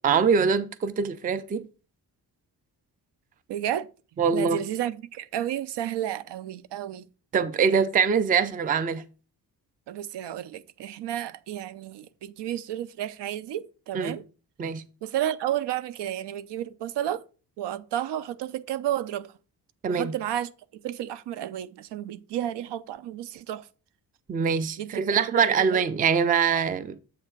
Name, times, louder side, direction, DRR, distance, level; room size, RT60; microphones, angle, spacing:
voice 1, 0.0-1.6 4.2-4.6 7.3-9.0 13.9-14.2 14.6-14.8 19.8-20.1 24.3-27.0, right 6 dB, 25° right, 0.3 m, -23 dB
voice 2, 3.5-3.9 4.3-7.0 9.9-14.2 15.0-17.2 17.6-19.3 19.9-20.5 20.8-23.7 24.8-25.4 25.7-25.8, right 11 dB, 80° right, 0.6 m, -32 dB
7.7 x 3.3 x 6.0 m
wide cardioid pair, 175°, 41 cm